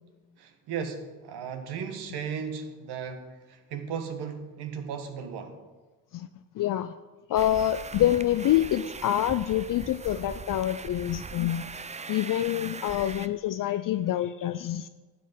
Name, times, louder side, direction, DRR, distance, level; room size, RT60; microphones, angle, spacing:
voice 1, 0.4-5.6, right 7 dB, 70° right, 7 dB, 1.5 m, -36 dB
voice 2, 6.6-6.9 7.3-11.7 12.1-14.9, left 12 dB, 50° left, 11 dB, 0.5 m, -26 dB
sound 1, 7.3-13.3, right 5 dB, 15° right, 0.5 m, -40 dB
12.0 x 8.4 x 5.2 m, 1.2 s
hypercardioid pair, 55°, 41 cm